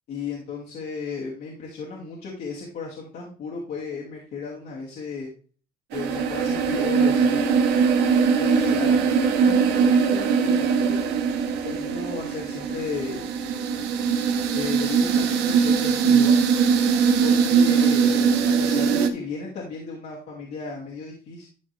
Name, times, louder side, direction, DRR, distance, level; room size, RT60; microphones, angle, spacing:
voice 1, 0.1-5.3 5.9-7.5 8.4-11.0 11.6-13.2 14.5-16.4 17.2-21.5, left 5 dB, 65° left, -3 dB, 2.3 m, -34 dB
sound 1, 5.9-19.1, right 6 dB, 85° right, 1.3 m, -21 dB
12.5 x 4.6 x 3.3 m, 0.41 s
cardioid pair, 110°, 17 cm